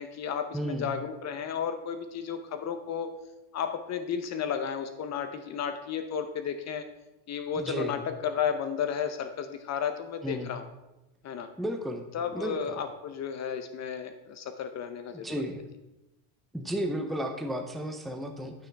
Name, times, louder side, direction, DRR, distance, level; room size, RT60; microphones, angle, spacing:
voice 1, 0.0-3.1 3.5-6.9 7.3-10.6 11.2-11.5 12.1-15.4, left 7 dB, 35° left, 8 dB, 0.7 m, -33 dB
voice 2, 0.5-0.9 7.6-8.0 10.2-10.5 11.6-12.1 12.3-12.6 15.1-15.6 16.5-18.5, equal, ahead, 5 dB, 0.6 m, -33 dB
9.7 x 9.1 x 3.4 m, 0.97 s
supercardioid pair, 135°, 50 cm